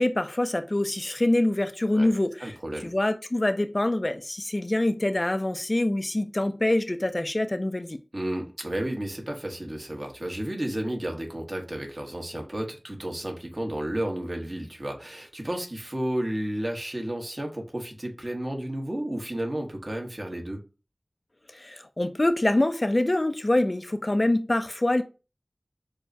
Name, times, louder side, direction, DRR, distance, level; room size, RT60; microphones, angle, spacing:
voice 1, 0.0-2.6 2.8-8.0 21.5-25.0, left 1 dB, 45° left, 0.4 m, -25 dB
voice 2, 2.4-2.9 8.1-20.6, right 1 dB, 45° right, 1.1 m, -32 dB
6.4 x 2.1 x 2.6 m
wide cardioid pair, 40°, 0 cm